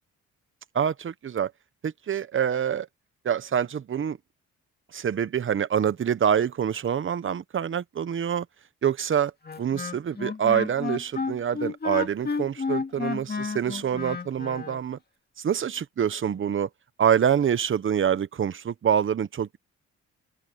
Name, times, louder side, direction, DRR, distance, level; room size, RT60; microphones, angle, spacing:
voice 1, 0.7-1.5 1.8-2.9 3.2-4.2 4.9-8.5 8.8-9.3 9.6-15.0 15.4-16.7 17.0-19.6, right 8 dB, 40° right, 1.0 m, -26 dB
Wind instrument woodwind instrument, 9.4-14.8, left 5 dB, 30° left, 2.4 m, -31 dB
open air
cardioid pair, 90°, 30 cm